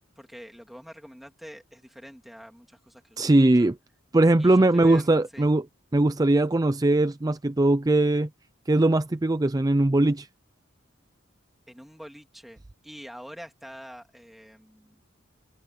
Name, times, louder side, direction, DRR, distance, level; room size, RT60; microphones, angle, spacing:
voice 1, 0.2-3.7 4.4-5.1 5.3-5.5 11.7-15.0, equal, ahead, 3.0 m, -45 dB
voice 2, 3.2-3.7 4.1-5.6 5.9-8.3 8.7-10.3, right 2 dB, 20° right, 0.4 m, -20 dB
head